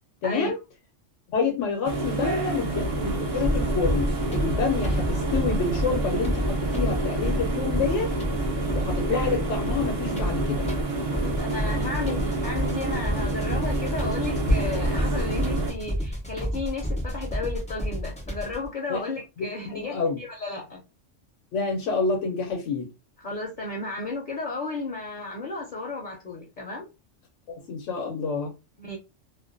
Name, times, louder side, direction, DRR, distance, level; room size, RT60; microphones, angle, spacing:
voice 1, 0.2-0.6 1.3-8.1 8.7-10.7 18.9-19.0 19.4-20.2 21.5-22.9 27.5-28.5, left 4 dB, 80° left, 1.0 m, -28 dB
sound 1, 1.8-15.7, right 2 dB, 50° right, 0.4 m, -28 dB
sound 2, 3.4-18.7, equal, 10° left, 0.4 m, -30 dB
voice 2, 11.1-20.8 23.2-26.9 28.8-29.0, left 3 dB, 50° left, 0.7 m, -34 dB
2.4 x 2.2 x 2.4 m
omnidirectional pair, 1.3 m